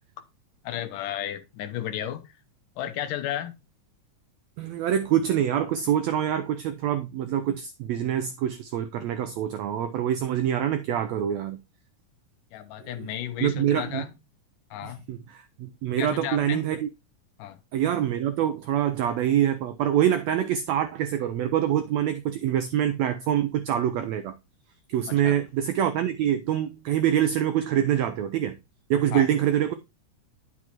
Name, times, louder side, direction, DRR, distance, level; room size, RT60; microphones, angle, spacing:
voice 1, 0.6-2.4 2.8-3.5 12.5-14.1 14.7-15.0 16.0-16.6 17.4-17.6 25.1-25.4 29.1-29.3, left 11 dB, 80° left, 2.4 m, -33 dB
voice 2, 4.6-11.6 12.8-13.1 13.4-14.0 14.8-16.9 17.7-24.3 24.9-28.6 28.9-29.7, right 10 dB, 90° right, 1.5 m, -25 dB
9.9 x 6.1 x 2.9 m
omnidirectional pair, 3.8 m